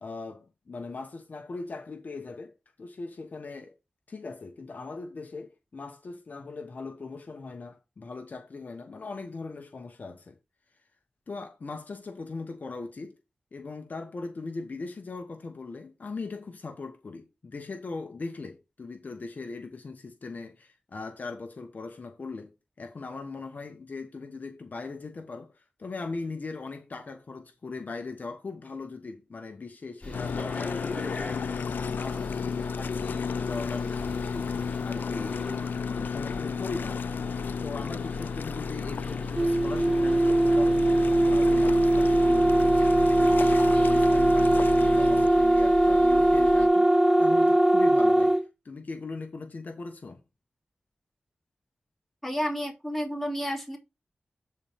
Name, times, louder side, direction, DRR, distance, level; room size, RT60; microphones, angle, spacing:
voice 1, 0.0-3.7 4.1-10.4 11.3-13.2 13.5-22.5 22.8-35.5 35.9-37.0 37.6-40.8 41.3-48.4 48.6-50.2, left 3 dB, 60° left, 1.1 m, -39 dB
sound 1, 30.0-46.7, left 1 dB, 40° left, 3.3 m, -38 dB
sound 2, 30.1-45.3, left 6 dB, 85° left, 0.3 m, -33 dB
sound 3, 39.4-48.4, right 1 dB, 15° right, 1.1 m, -21 dB
voice 2, 52.2-53.8, equal, 5° left, 3.3 m, -31 dB
12.5 x 4.3 x 3.5 m
wide cardioid pair, 70°, 3 cm